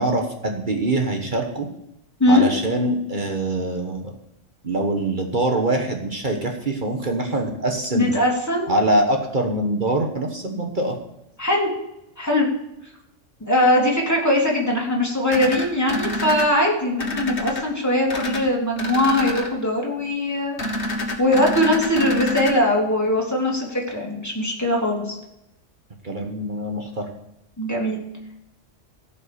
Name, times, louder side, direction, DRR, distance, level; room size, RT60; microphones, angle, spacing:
voice 1, 0.0-1.7 2.3-4.1 4.6-8.1 8.7-11.0 26.0-27.1, right 1 dB, 40° right, 3 dB, 1.4 m, -24 dB
voice 2, 7.9-8.7 11.4-11.7 12.2-12.5 13.4-20.6 21.2-25.2 27.6-28.0, left 1 dB, 15° left, -2 dB, 3.1 m, -21 dB
sound 1, 15.3-16.5 17.0-17.6 18.1-18.4 18.8-19.5 20.6-22.5, left 1 dB, 65° left, 1.8 m, -27 dB
15.5 x 5.7 x 6.8 m, 0.85 s
omnidirectional pair, 1.3 m